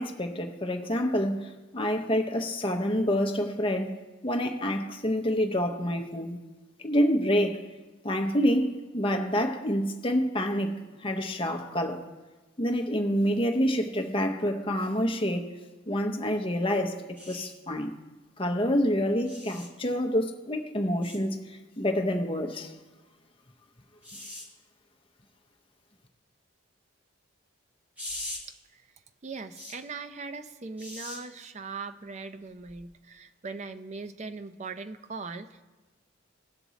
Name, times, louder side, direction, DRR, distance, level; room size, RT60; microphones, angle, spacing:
voice 1, 0.0-3.9 4.2-6.4 6.8-7.6 8.0-8.7 8.9-12.0 12.6-15.5 15.9-17.9 18.4-22.7, equal, 25° left, 4 dB, 0.7 m, -27 dB
sound 1, 17.2-17.5 19.3-19.7 21.0-21.2 24.0-24.5 28.0-28.4 29.6-29.8 30.8-31.2 32.7-32.8, left 1 dB, 5° right, 1.4 m, -40 dB
voice 2, 29.2-35.6, right 4 dB, 35° right, 9 dB, 0.4 m, -40 dB
17.5 x 6.0 x 4.0 m, 1.2 s
head